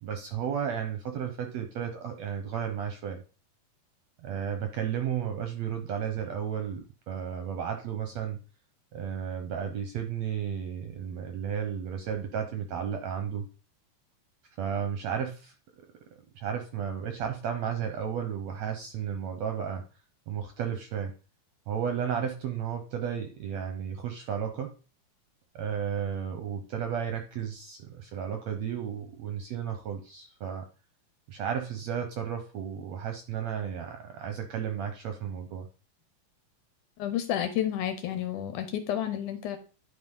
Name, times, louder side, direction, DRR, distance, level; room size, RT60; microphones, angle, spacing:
voice 1, 0.0-3.2 4.2-8.4 8.9-13.5 14.6-15.5 16.3-19.8 20.3-21.1 21.7-24.7 25.5-30.6 31.3-35.7, right 8 dB, 70° right, 6 dB, 1.7 m, -33 dB
voice 2, 37.0-39.6, left 10 dB, 75° left, 9 dB, 2.1 m, -30 dB
10.0 x 4.4 x 5.3 m, 0.36 s
omnidirectional pair, 4.1 m